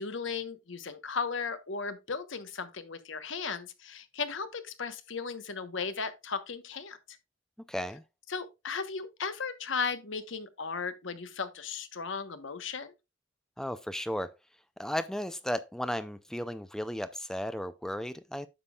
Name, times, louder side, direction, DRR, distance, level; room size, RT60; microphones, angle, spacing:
voice 1, 0.0-7.2 8.3-12.9, left 5 dB, 70° left, 1.1 m, -36 dB
voice 2, 7.7-8.0 13.6-14.3 14.8-18.5, equal, 5° left, 0.4 m, -34 dB
9.7 x 7.2 x 2.3 m
head